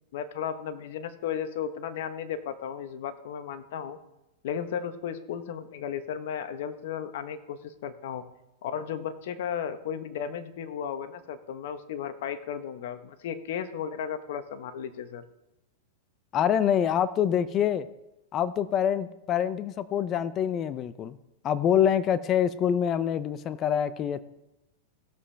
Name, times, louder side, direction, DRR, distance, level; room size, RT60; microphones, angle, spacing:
voice 1, 0.1-4.0 4.4-8.2 8.6-15.2, left 8 dB, 65° left, 10 dB, 1.1 m, -34 dB
voice 2, 16.3-17.9 18.3-21.2 21.4-24.2, left 9 dB, 35° left, 15 dB, 0.6 m, -25 dB
17.0 x 7.3 x 3.4 m, 0.93 s
hypercardioid pair, 125°, 0 cm